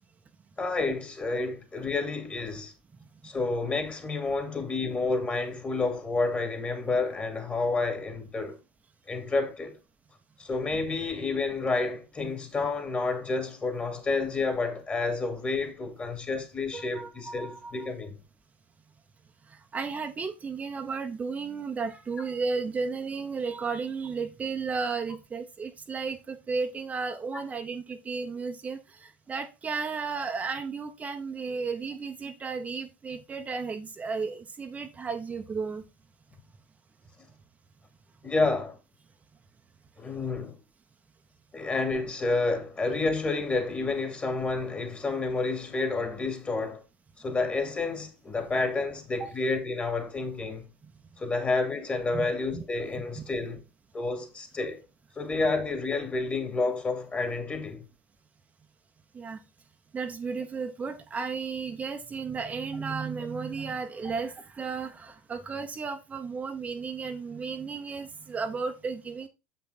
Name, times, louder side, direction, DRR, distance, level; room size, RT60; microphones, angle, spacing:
voice 1, 0.6-2.7 3.2-8.6 9.1-9.8 10.4-18.2 38.2-38.8 40.0-40.5 41.5-46.8 47.2-50.7 51.2-53.6 53.9-54.8 55.2-57.8, left 3 dB, 25° left, 2.6 m, -29 dB
voice 2, 16.7-17.9 19.5-35.8 49.2-49.3 52.1-52.3 52.5-52.6 53.1-53.2 59.1-59.4 59.9-69.3, right 5 dB, 25° right, 0.9 m, -34 dB
7.2 x 5.8 x 4.1 m
hypercardioid pair, 90°, 6 cm